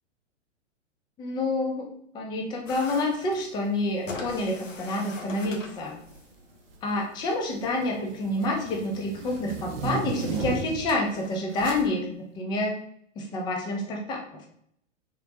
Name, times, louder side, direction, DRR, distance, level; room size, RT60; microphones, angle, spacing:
voice 1, 1.2-1.9 2.1-6.0 6.8-12.8 13.2-14.5, left 2 dB, 10° left, 1 dB, 0.5 m, -28 dB
sound 1, 2.6-11.9, left 3 dB, 80° left, 0.8 m, -45 dB
sound 2, 4.7-5.0 5.9-6.4 6.7-11.0 11.6-11.9, right 5 dB, 50° right, 0.6 m, -35 dB
3.7 x 2.1 x 3.9 m, 0.69 s
figure-of-eight pair, 105°, 37 cm